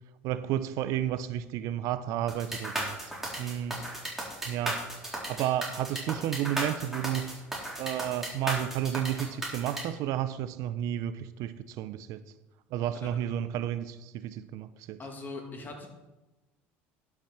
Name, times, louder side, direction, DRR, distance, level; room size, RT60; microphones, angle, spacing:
voice 1, 0.2-3.1 3.4-3.8 4.5-7.3 7.8-12.2 12.7-15.0, right 11 dB, 60° right, 14 dB, 0.6 m, -32 dB
sound 1, 2.3-9.8, right 1 dB, 5° right, 4.1 m, -35 dB
voice 2, 15.0-15.9, left 3 dB, 30° left, 3 dB, 2.6 m, -40 dB
11.0 x 5.9 x 6.0 m, 1.1 s
supercardioid pair, 85°, 6 cm